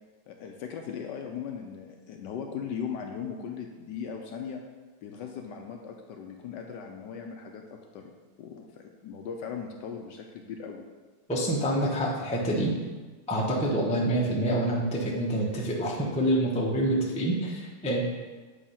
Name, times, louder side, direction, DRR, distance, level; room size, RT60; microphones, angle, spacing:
voice 1, 0.3-4.6 5.0-8.1 8.4-10.8, left 7 dB, 75° left, 3 dB, 1.1 m, -38 dB
voice 2, 11.3-12.7 13.3-18.0, right 1 dB, 10° left, -3 dB, 0.4 m, -27 dB
8.4 x 3.1 x 5.5 m, 1.3 s
omnidirectional pair, 2.2 m